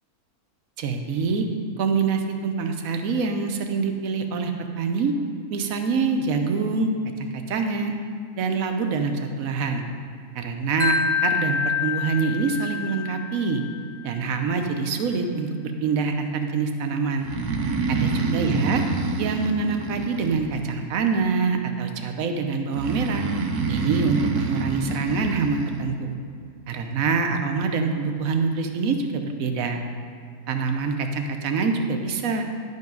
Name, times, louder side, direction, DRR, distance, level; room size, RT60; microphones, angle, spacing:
voice 1, 0.8-1.4 1.8-5.1 5.5-6.9 7.2-7.9 8.4-9.8 10.4-11.0 11.2-13.6 14.0-17.3 17.9-18.8 19.2-23.2 23.7-26.1 26.7-29.8 30.5-32.4, right 4 dB, 70° right, 5 dB, 1.2 m, -25 dB
Wind chime, 10.8-13.9, left 6 dB, 30° left, 2.0 m, -27 dB
Breathing, 17.2-20.9 22.7-25.8, right 3 dB, 85° right, 1.4 m, -27 dB
10.5 x 5.4 x 5.2 m, 2.3 s
omnidirectional pair, 1.6 m